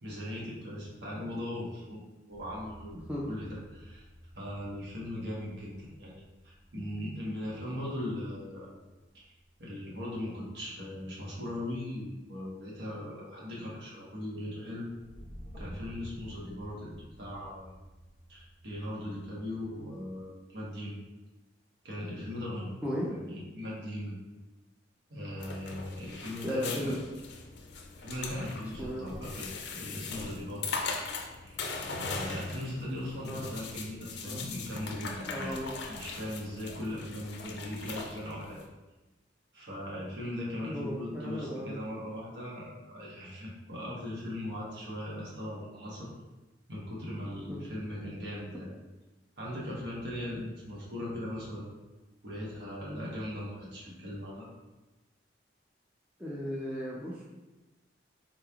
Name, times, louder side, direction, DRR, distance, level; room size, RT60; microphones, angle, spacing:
voice 1, 0.0-3.0 3.3-4.0 4.3-8.7 9.1-9.2 9.6-14.9 15.6-16.9 17.2-17.8 18.3-21.0 21.8-22.7 23.1-24.2 25.1-27.0 28.0-31.0 31.4-31.6 31.9-35.6 35.9-38.6 39.5-46.1 46.7-48.7 49.4-51.7 52.2-54.5, left 1 dB, 70° right, -5 dB, 1.1 m, -39 dB
sound 1, 2.3-20.3, equal, 35° right, 1.1 m, -54 dB
sound 2, 25.4-38.7, left 4 dB, 65° left, 0.4 m, -40 dB
voice 2, 26.4-27.0 28.8-29.1 33.3-33.5 34.2-34.4 35.3-35.9 40.6-41.8 47.5-47.6 56.2-57.2, equal, 10° right, -5 dB, 0.4 m, -35 dB
4.0 x 3.1 x 2.3 m, 1.1 s
head